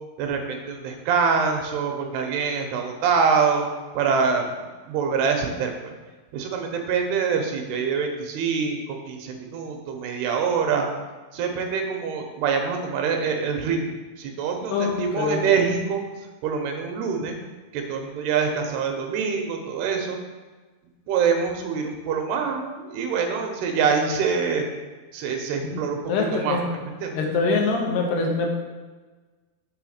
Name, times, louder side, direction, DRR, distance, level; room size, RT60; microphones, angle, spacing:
voice 1, 0.2-3.7 3.9-4.5 4.9-5.9 6.3-10.9 11.3-16.0 16.4-17.3 17.7-20.2 21.1-24.7 25.1-26.0 26.3-27.2, right 6 dB, 90° right, 3 dB, 2.9 m, -25 dB
voice 2, 14.7-15.4 25.7-25.8 26.1-26.6 27.1-28.5, left 4 dB, 90° left, 1 dB, 3.0 m, -24 dB
7.3 x 3.5 x 6.4 m, 1.3 s
omnidirectional pair, 4.5 m